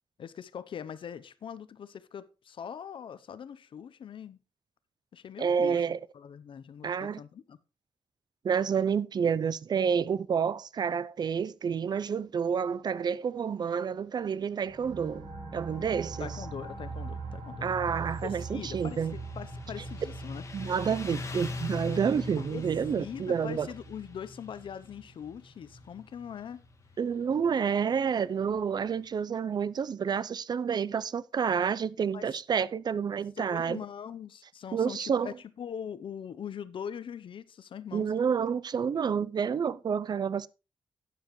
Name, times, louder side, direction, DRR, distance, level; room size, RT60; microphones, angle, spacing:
voice 1, 0.2-4.4 5.1-5.8 6.1-7.6 16.2-17.7 18.2-20.4 22.4-22.6 23.0-26.6 32.1-32.4 33.4-38.1, left 8 dB, 70° left, 0.6 m, -42 dB
voice 2, 5.4-6.0 6.8-7.2 8.4-15.3 15.5-16.3 17.6-19.1 20.5-23.7 27.0-33.8 34.7-35.3 37.9-40.5, right 7 dB, 50° right, 0.4 m, -29 dB
sound 1, 14.7-26.0, right 3 dB, 80° right, 6.4 m, -43 dB
Motorcycle, 17.9-29.0, left 3 dB, 35° left, 1.6 m, -43 dB
12.0 x 9.3 x 3.1 m
wide cardioid pair, 120°, 9 cm